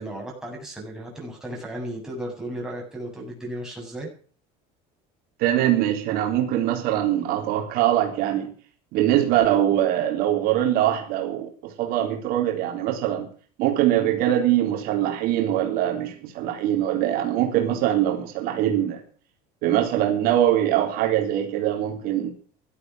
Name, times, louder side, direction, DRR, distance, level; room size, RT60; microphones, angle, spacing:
voice 1, 0.0-4.1, right 1 dB, 5° right, -2 dB, 7.7 m, -35 dB
voice 2, 5.4-8.5 8.9-13.3 13.6-19.0 19.6-22.3, right 12 dB, 60° right, 2 dB, 3.7 m, -22 dB
16.5 x 12.5 x 6.2 m, 0.42 s
cardioid pair, 145°, 17 cm